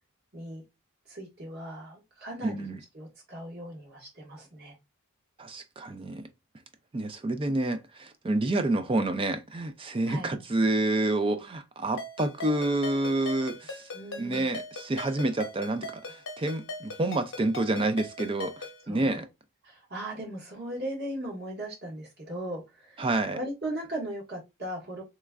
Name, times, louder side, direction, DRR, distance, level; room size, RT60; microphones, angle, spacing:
voice 1, 0.3-0.6 1.1-2.7 2.9-4.7 10.1-10.3 13.9-14.5 18.9-19.2 19.6-23.0 23.3-25.0, right 1 dB, 45° right, 1.5 m, -38 dB
voice 2, 2.4-2.8 5.4-6.3 6.9-13.9 14.2-18.5 18.9-19.3 23.0-23.4, right 2 dB, 25° right, 0.3 m, -28 dB
Ringtone, 12.0-18.8, left 2 dB, 55° left, 0.9 m, -41 dB
3.4 x 3.1 x 2.3 m
head